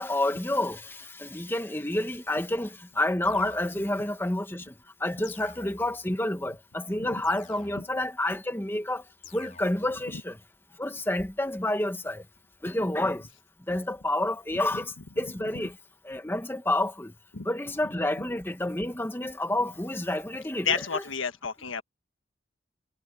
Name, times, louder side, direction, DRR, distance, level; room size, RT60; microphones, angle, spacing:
voice 1, 0.0-4.7 5.0-9.0 9.3-10.4 10.8-12.2 12.6-13.2 13.7-15.7 16.0-17.1 17.4-21.0, left 1 dB, 10° left, 1.2 m, -29 dB
sound 1, 3.2-4.1 5.2-6.1 7.2-8.1 9.2-10.1, left 4 dB, 40° left, 3.9 m, -50 dB
voice 2, 20.6-21.8, left 6 dB, 80° left, 1.5 m, -30 dB
head